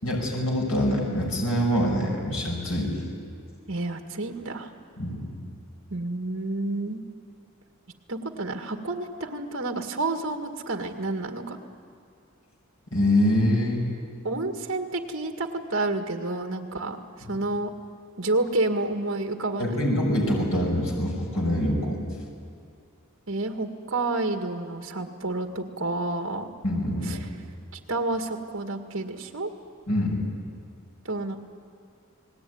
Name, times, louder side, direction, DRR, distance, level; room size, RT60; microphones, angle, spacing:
voice 1, 0.0-3.0 5.0-5.3 12.9-13.9 19.6-22.0 26.6-27.1 29.9-30.2, left 1 dB, 80° left, 0 dB, 6.0 m, -24 dB
voice 2, 3.7-4.7 5.9-7.0 8.1-11.6 14.2-17.0 17.3-17.7 18.2-19.8 23.3-26.5 27.0-27.3 27.7-29.5 31.0-31.4, right 2 dB, 60° right, 5 dB, 1.9 m, -29 dB
29.5 x 19.5 x 9.5 m, 2.2 s
head